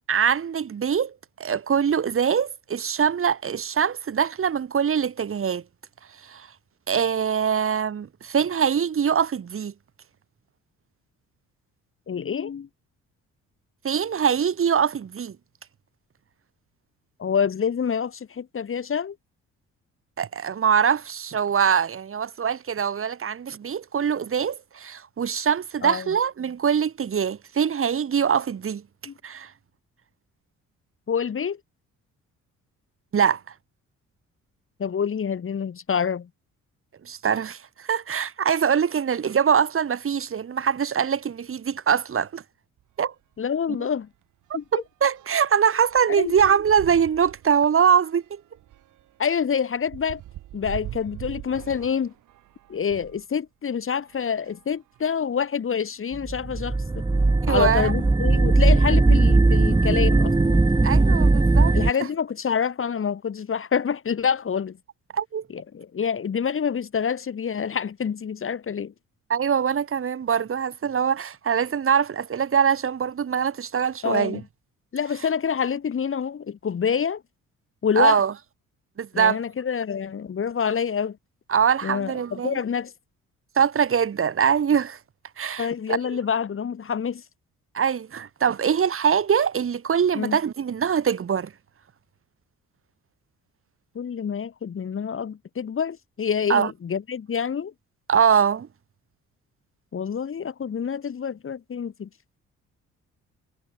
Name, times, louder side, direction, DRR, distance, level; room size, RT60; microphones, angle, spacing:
voice 1, 0.1-1.1 1.4-5.6 6.2-6.5 6.9-9.7 13.8-15.4 20.2-28.8 29.2-29.5 33.1-33.4 37.0-42.4 43.0-43.1 44.7-48.4 57.4-57.9 60.8-61.8 65.1-65.4 69.3-74.4 78.0-78.3 79.0-79.4 81.5-82.6 83.6-85.0 85.4-86.0 87.7-91.5 96.5-96.7 98.1-98.7, right 7 dB, 45° right, 2.3 m, -23 dB
voice 2, 12.1-12.7 17.2-19.2 25.8-26.1 29.1-29.2 31.1-31.6 34.8-36.3 43.4-44.1 44.5-44.8 46.1-46.3 49.2-50.2 50.5-52.1 52.7-57.0 57.5-60.6 61.7-64.8 65.5-68.9 74.0-74.4 74.9-77.2 77.8-78.2 79.1-81.2 81.8-82.9 85.6-87.2 90.1-90.4 93.9-97.7 99.9-102.1, left 7 dB, 45° left, 2.5 m, -27 dB
sound 1, 42.8-43.0 43.3-43.4 43.8-53.3 54.0-55.3 56.0-56.1 56.3-56.4 58.1-58.3 58.9-59.1 59.5-60.8, right 14 dB, 85° right, 6.7 m, -44 dB
sound 2, 56.1-61.9, right 3 dB, 15° right, 1.0 m, -19 dB
cardioid pair, 90°, 30 cm